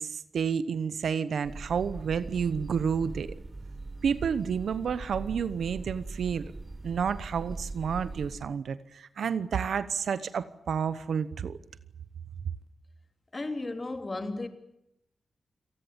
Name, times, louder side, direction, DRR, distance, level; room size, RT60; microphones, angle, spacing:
voice 1, 0.0-3.3 4.0-6.5 6.8-11.6, right 7 dB, 85° right, 1.0 m, -30 dB
sound 1, 1.4-8.4, right 3 dB, 35° right, 4.5 m, -41 dB
voice 2, 13.3-14.5, left 2 dB, 35° left, 3.3 m, -34 dB
28.5 x 19.0 x 8.1 m
cardioid pair, 60°, 0 cm